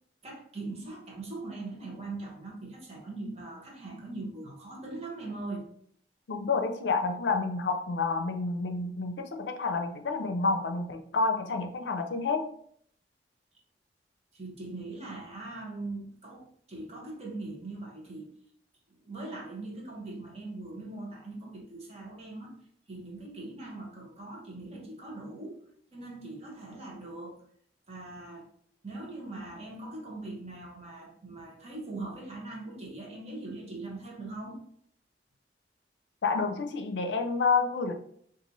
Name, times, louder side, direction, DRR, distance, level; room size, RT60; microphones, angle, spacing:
voice 1, 0.2-5.7 14.3-18.3 18.9-22.6 22.9-25.6 25.9-27.4 27.9-28.5 28.8-34.6, right 2 dB, 35° right, -2 dB, 0.9 m, -41 dB
voice 2, 6.3-12.5 36.2-37.9, left 4 dB, 85° left, 5 dB, 0.5 m, -29 dB
3.0 x 2.5 x 3.9 m, 0.64 s
head